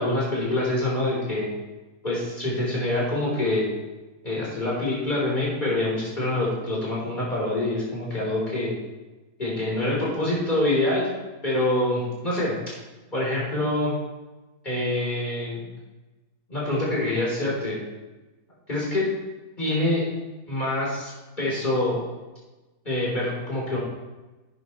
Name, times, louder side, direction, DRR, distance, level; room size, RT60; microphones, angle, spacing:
voice 1, 0.0-1.5 2.0-3.7 4.2-8.7 9.4-11.1 11.4-12.6 13.1-13.9 14.6-15.7 16.5-17.8 18.7-19.1 19.6-20.0 20.5-21.1 21.4-22.0 22.8-23.8, left 1 dB, 25° left, -5 dB, 4.2 m, -25 dB
11.5 x 9.1 x 3.3 m, 1.1 s
omnidirectional pair, 1.8 m